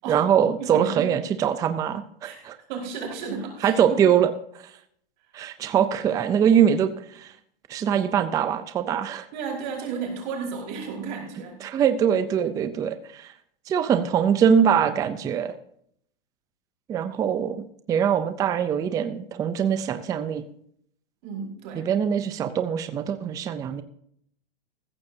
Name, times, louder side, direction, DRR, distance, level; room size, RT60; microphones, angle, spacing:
voice 1, 0.1-2.5 3.6-4.3 4.5-4.7 5.3-7.3 7.7-9.3 11.6-13.3 13.7-15.5 16.9-20.4 21.7-23.8, right 8 dB, 10° right, 11 dB, 0.4 m, -23 dB
voice 2, 0.6-1.1 2.2-4.0 9.3-11.6 21.2-21.9, right 5 dB, 50° right, 0 dB, 4.9 m, -33 dB
15.0 x 14.0 x 2.7 m, 0.66 s
hypercardioid pair, 145°, 30 cm